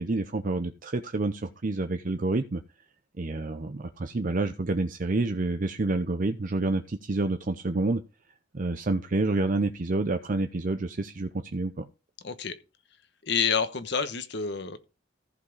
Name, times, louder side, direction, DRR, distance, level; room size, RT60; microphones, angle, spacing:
voice 1, 0.0-2.6 3.2-8.0 8.5-11.9, right 2 dB, 45° right, 0.6 m, -28 dB
voice 2, 12.2-12.5 13.2-14.8, left 6 dB, 60° left, 1.1 m, -28 dB
14.5 x 5.5 x 3.9 m
head